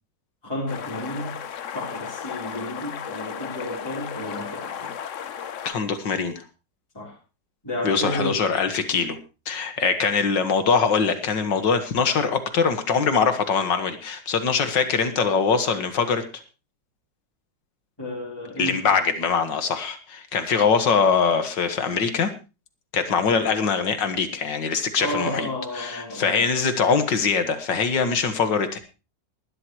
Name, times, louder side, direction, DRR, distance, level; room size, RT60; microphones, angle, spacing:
voice 1, 0.4-1.4 1.7-4.9 6.9-7.2 7.6-8.4 18.0-19.0 23.1-23.3 25.0-26.4, left 1 dB, 15° left, 3.9 m, -32 dB
sound 1, 0.7-5.7, left 8 dB, 55° left, 1.0 m, -35 dB
voice 2, 5.7-6.4 7.8-9.2 9.5-16.4 18.6-22.3 22.9-25.5 25.7-28.8, left 5 dB, 80° left, 2.3 m, -23 dB
20.0 x 12.0 x 3.1 m
omnidirectional pair, 1.9 m